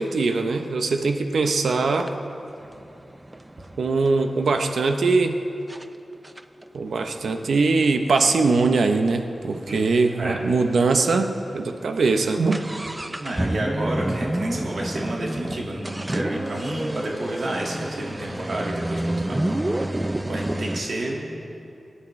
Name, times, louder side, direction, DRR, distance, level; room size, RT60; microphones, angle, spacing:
voice 1, 0.0-2.1 3.8-5.4 6.7-11.3 11.5-12.6, right 3 dB, 90° right, 6 dB, 0.7 m, -21 dB
sound 1, 1.4-1.6 2.0-4.6 5.2-5.3 5.7-5.9 6.2-9.9 10.2-10.3 10.5-10.6 11.2-11.4 11.7-20.8, right 1 dB, 15° right, 0.4 m, -30 dB
voice 2, 13.2-19.6 19.9-21.4, right 1 dB, 60° right, -2 dB, 1.9 m, -30 dB
23.5 x 11.0 x 3.2 m, 2.7 s
wide cardioid pair, 150°, 0 cm